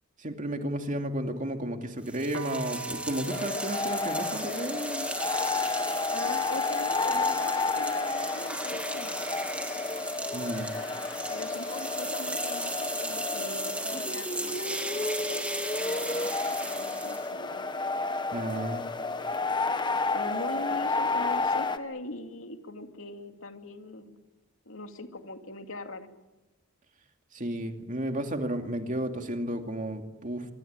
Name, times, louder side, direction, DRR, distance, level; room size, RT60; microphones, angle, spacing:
voice 1, 0.2-5.1 10.3-10.7 18.3-18.8 27.3-30.5, right 1 dB, 40° right, 4 dB, 2.5 m, -33 dB
sound 1, 2.1-17.3, right 2 dB, 5° right, 2.4 m, -36 dB
sound 2, 2.3-8.2, right 4 dB, 70° right, 1.5 m, -45 dB
sound 3, 3.3-21.8, left 3 dB, 20° left, 1.2 m, -31 dB
voice 2, 6.1-9.2 11.3-15.5 15.8-17.6 20.1-24.2 24.7-26.1, left 2 dB, 75° left, 5 dB, 2.8 m, -41 dB
24.5 x 23.5 x 9.0 m, 1.0 s
head